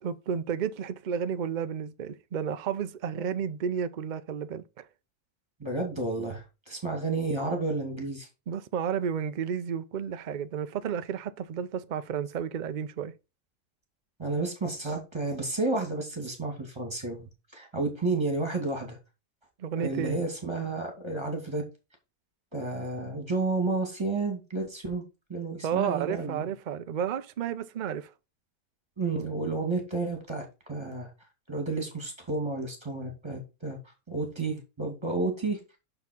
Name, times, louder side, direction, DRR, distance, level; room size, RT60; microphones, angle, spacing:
voice 1, 0.0-4.9 8.5-13.1 19.6-20.2 25.6-28.1, right 8 dB, 60° right, 0.4 m, -32 dB
voice 2, 5.6-8.3 14.2-19.0 19.8-21.6 22.5-25.0 25.3-26.5 29.0-31.1 31.5-33.8 34.1-35.6, right 3 dB, 15° right, 2.4 m, -31 dB
6.5 x 5.9 x 4.4 m
omnidirectional pair, 1.6 m